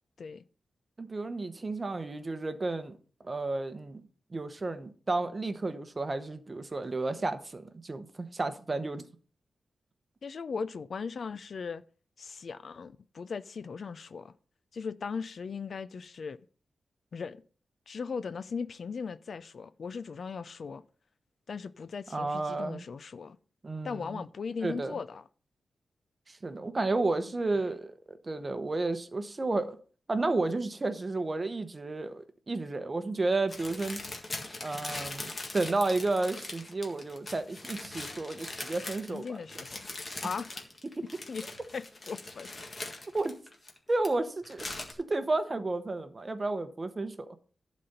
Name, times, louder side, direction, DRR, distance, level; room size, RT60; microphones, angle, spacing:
voice 1, 1.0-3.0 3.2-4.0 4.3-9.0 22.1-22.9 23.6-24.2 24.6-25.0 26.3-29.8 30.1-34.0 34.6-39.4 41.0-41.1 43.1-43.3 43.9-44.7 45.0-47.4, right 2 dB, 25° right, 0.9 m, -32 dB
voice 2, 10.2-11.8 12.2-14.3 14.7-16.4 17.1-17.4 17.9-20.8 21.5-23.4 23.8-25.2 27.5-27.7 39.1-39.9 40.2-40.6 41.3-41.4 41.7-42.5, left 5 dB, 55° left, 0.4 m, -38 dB
sound 1, 33.5-44.1 44.4-44.9, left 2 dB, 30° left, 1.8 m, -41 dB
11.5 x 4.2 x 6.6 m
wide cardioid pair, 140°, 0 cm